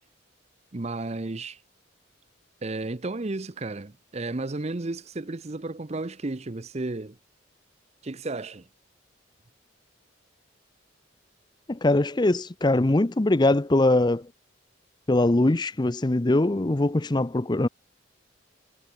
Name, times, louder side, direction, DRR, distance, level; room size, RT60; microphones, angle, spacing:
voice 1, 0.7-1.6 2.6-7.2 8.0-8.7, right 2 dB, 35° right, 0.7 m, -33 dB
voice 2, 11.7-14.3 15.1-17.7, left 2 dB, 20° left, 0.6 m, -22 dB
head